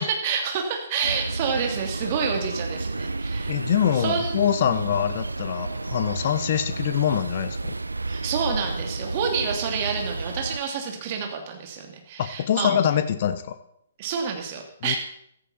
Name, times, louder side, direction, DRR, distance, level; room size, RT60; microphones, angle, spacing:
voice 1, 0.0-3.6 4.0-4.8 8.1-12.7 14.0-15.0, right 6 dB, 35° right, 3 dB, 2.9 m, -28 dB
sound 1, 1.0-10.6, right 3 dB, 75° right, 0.5 m, -31 dB
voice 2, 3.5-7.7 12.2-13.6 14.8-15.0, left 9 dB, 40° left, 12 dB, 1.0 m, -24 dB
15.0 x 13.5 x 4.3 m, 0.74 s
figure-of-eight pair, 125°, 0 cm